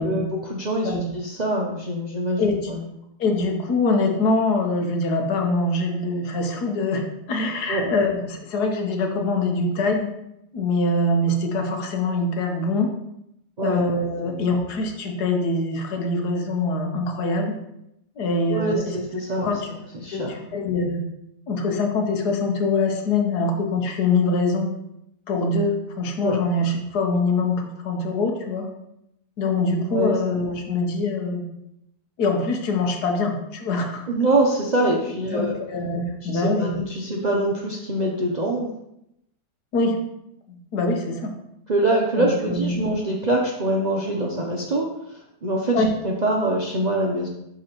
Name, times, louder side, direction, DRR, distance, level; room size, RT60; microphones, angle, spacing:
voice 1, 0.0-2.9 7.7-7.9 13.6-13.8 14.3-14.4 18.5-19.5 19.9-20.4 26.2-26.4 29.9-30.2 34.1-35.6 36.2-38.7 41.7-47.3, right 1 dB, 45° right, -2 dB, 0.5 m, -24 dB
voice 2, 3.2-10.1 10.5-12.9 13.6-17.5 18.2-19.0 19.3-19.6 20.1-21.0 21.5-24.7 25.3-28.7 29.4-31.5 32.2-34.0 35.2-36.7 39.7-40.0 40.5-41.4 42.2-42.7 45.7-45.9, left 2 dB, 70° left, 3 dB, 1.5 m, -24 dB
11.5 x 3.8 x 3.0 m, 0.82 s
omnidirectional pair, 1.8 m